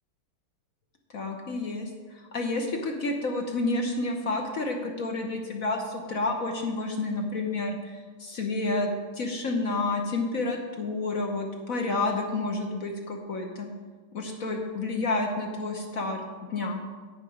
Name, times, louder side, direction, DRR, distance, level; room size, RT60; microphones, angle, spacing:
voice 1, 1.1-13.7 14.1-16.2 16.5-16.8, left 2 dB, 50° left, 3 dB, 1.1 m, -30 dB
9.6 x 9.1 x 5.0 m, 1.4 s
omnidirectional pair, 2.3 m